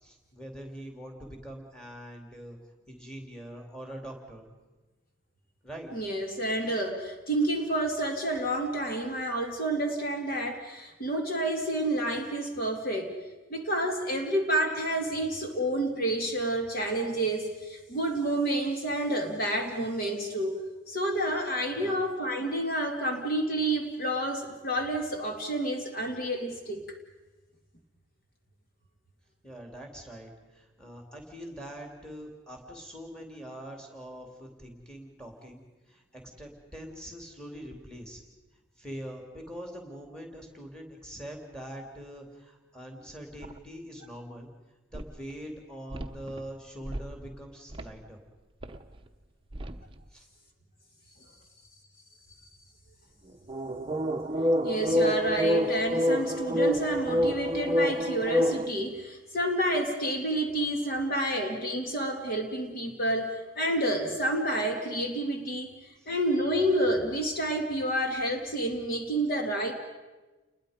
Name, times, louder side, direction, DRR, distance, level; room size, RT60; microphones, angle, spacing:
voice 1, 0.0-2.6 2.9-4.5 5.6-5.9 21.7-22.0 29.4-38.2 38.8-44.5 44.9-48.2 50.1-50.3 66.0-66.1, equal, 5° left, 2 dB, 3.0 m, -43 dB
voice 2, 5.9-13.1 13.5-20.6 20.9-26.8 54.6-69.7, right 1 dB, 45° left, 2 dB, 2.4 m, -29 dB
sound 1, 43.4-43.6 44.9-45.0 45.9-46.4 46.9-47.3 47.7-47.9 48.6-48.8 49.5-49.8 53.5-58.7, equal, 25° right, 0.8 m, -27 dB
29.0 x 21.0 x 5.2 m, 1.2 s
head